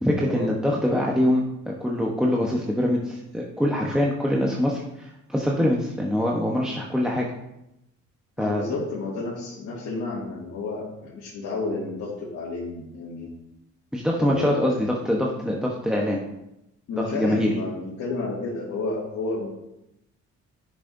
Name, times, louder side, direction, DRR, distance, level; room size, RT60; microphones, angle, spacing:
voice 1, 0.0-7.3 8.4-8.6 13.9-16.2 17.0-17.5, left 1 dB, ahead, -2 dB, 1.0 m, -24 dB
voice 2, 8.4-13.3 14.2-14.8 16.9-19.6, left 3 dB, 70° left, -8 dB, 2.2 m, -31 dB
10.0 x 6.3 x 2.7 m, 0.86 s
cardioid pair, 90°, 30 cm